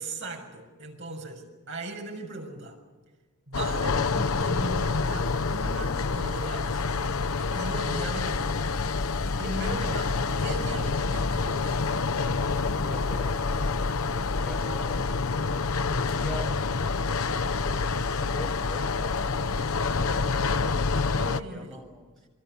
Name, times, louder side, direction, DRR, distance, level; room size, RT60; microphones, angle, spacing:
voice 1, 0.0-2.8 3.5-6.8 7.4-8.7 9.4-11.8 21.1-21.8, right 2 dB, 55° right, 2 dB, 7.0 m, -38 dB
sound 1, 3.5-21.4, left 4 dB, 70° left, 0.8 m, -27 dB
voice 2, 12.8-13.3 14.3-15.2 15.9-16.6 21.4-22.3, equal, ahead, 1 dB, 6.1 m, -44 dB
28.0 x 24.5 x 7.1 m, 1.3 s
head